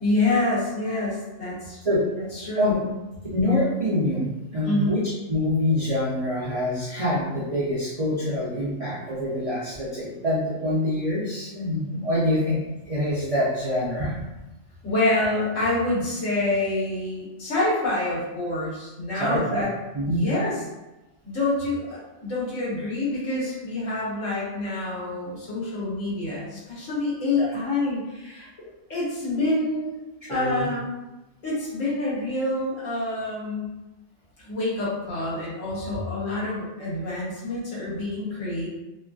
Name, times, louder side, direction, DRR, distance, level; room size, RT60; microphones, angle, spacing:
voice 1, 0.0-1.8 2.3-2.9 4.6-5.0 14.8-19.7 20.1-20.6 21.2-28.5 28.9-30.0 30.3-30.9 31.4-33.7 34.4-38.7, left 2 dB, 85° left, -8 dB, 1.4 m, -27 dB
voice 2, 3.3-5.0 5.3-12.6 12.9-14.1 19.1-19.7 19.9-20.3 27.4-27.5 30.2-30.7, left 1 dB, 45° right, -9 dB, 0.4 m, -25 dB
3.0 x 2.4 x 2.3 m, 1.0 s
omnidirectional pair, 1.3 m